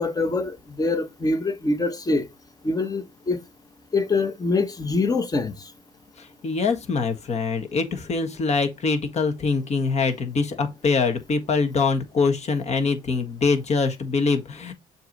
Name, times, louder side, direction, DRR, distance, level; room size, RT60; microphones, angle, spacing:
voice 1, 0.0-2.2 2.6-3.4 3.9-5.5, left 3 dB, 20° left, 1.2 m, -24 dB
voice 2, 6.2-14.7, left 4 dB, 40° left, 1.6 m, -24 dB
6.9 x 3.0 x 5.3 m
cardioid pair, 110°, 17 cm